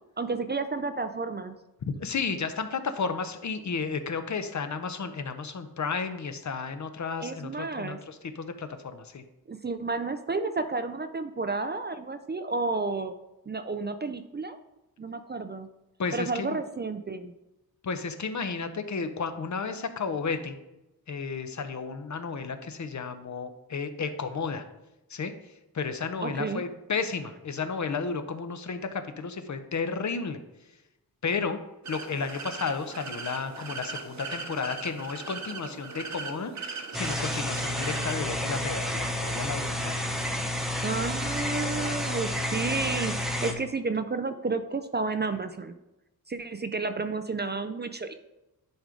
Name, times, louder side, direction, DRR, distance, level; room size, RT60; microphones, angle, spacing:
voice 1, 0.2-1.6 7.2-8.0 9.5-13.1 13.5-14.6 15.0-15.7 16.1-17.3 26.2-26.6 40.8-45.8 46.3-48.1, right 3 dB, 30° right, 9 dB, 0.4 m, -31 dB
voice 2, 1.9-9.2 16.0-16.6 17.8-20.6 21.1-24.6 25.1-25.3 25.7-30.4 31.2-31.6 31.9-40.1, left 5 dB, 50° left, 9 dB, 0.8 m, -33 dB
sound 1, 31.8-38.2, right 4 dB, 50° right, 1.0 m, -39 dB
sound 2, 36.9-43.5, left 1 dB, ahead, 0.9 m, -30 dB
10.5 x 5.0 x 3.8 m, 0.95 s
wide cardioid pair, 120°, 37 cm